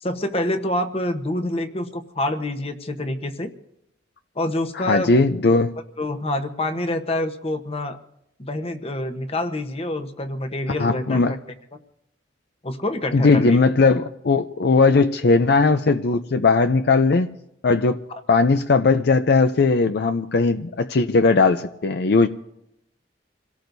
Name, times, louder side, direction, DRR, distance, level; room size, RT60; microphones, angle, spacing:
voice 1, 0.0-3.5 4.4-5.1 6.0-8.0 8.4-11.4 12.6-13.6, left 1 dB, 35° left, 8 dB, 1.0 m, -26 dB
voice 2, 4.8-5.7 10.8-11.4 13.1-17.3 17.6-22.3, left 3 dB, 60° left, 9 dB, 0.5 m, -18 dB
28.0 x 17.5 x 2.7 m, 0.83 s
head